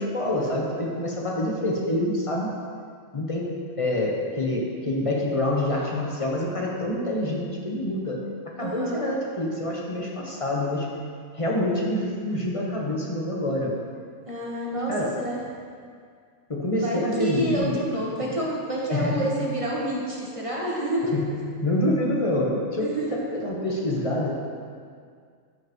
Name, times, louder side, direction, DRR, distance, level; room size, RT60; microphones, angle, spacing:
voice 1, 0.0-2.5 3.1-3.5 3.8-8.2 8.6-10.9 11.3-13.8 14.9-15.1 16.5-17.8 18.9-19.3 21.1-24.3, left 1 dB, 25° left, -3 dB, 1.2 m, -26 dB
voice 2, 8.6-9.1 14.3-15.4 16.7-21.2 22.8-23.2, right 1 dB, 25° right, -5 dB, 1.4 m, -28 dB
14.5 x 5.7 x 3.1 m, 2.1 s
omnidirectional pair, 1.5 m